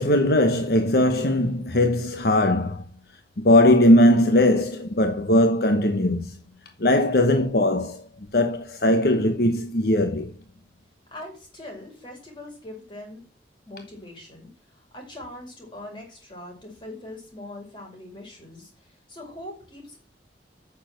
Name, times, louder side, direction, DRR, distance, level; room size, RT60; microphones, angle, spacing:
voice 1, 0.0-2.8 3.4-6.4 6.8-8.0 8.3-10.3, left 1 dB, 60° left, 1.0 m, -19 dB
voice 2, 11.1-13.2 13.6-20.0, left 1 dB, 25° left, 5.8 m, -42 dB
9.4 x 7.1 x 7.7 m
head